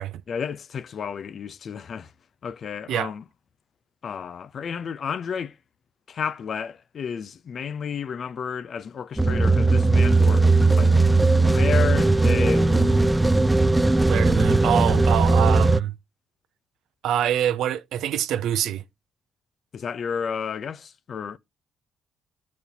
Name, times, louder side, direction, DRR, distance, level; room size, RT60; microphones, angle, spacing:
voice 1, 0.3-2.1 2.4-3.2 4.0-5.6 6.1-10.5 10.8-11.0 11.4-13.2 19.7-21.4, left 6 dB, 55° left, 0.5 m, -31 dB
sound 1, 9.2-15.8, right 3 dB, 10° right, 0.4 m, -18 dB
voice 2, 14.1-15.9 17.0-18.8, right 10 dB, 80° right, 0.5 m, -25 dB
12.5 x 4.2 x 2.7 m
cardioid pair, 90°, 0 cm